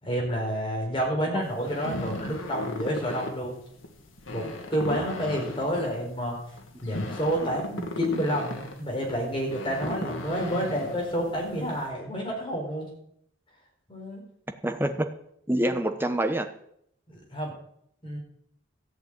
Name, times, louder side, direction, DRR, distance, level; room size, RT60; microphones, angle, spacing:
voice 1, 0.0-3.6 4.3-6.3 6.8-12.9 13.9-14.2 17.1-17.5 18.0-18.2, equal, 25° left, -1 dB, 4.4 m, -29 dB
sound 1, 1.4-11.9, left 2 dB, 90° left, 1.9 m, -37 dB
voice 2, 14.6-15.1 15.5-16.5, right 1 dB, 10° right, 7 dB, 1.0 m, -26 dB
14.0 x 6.5 x 8.8 m, 0.71 s
head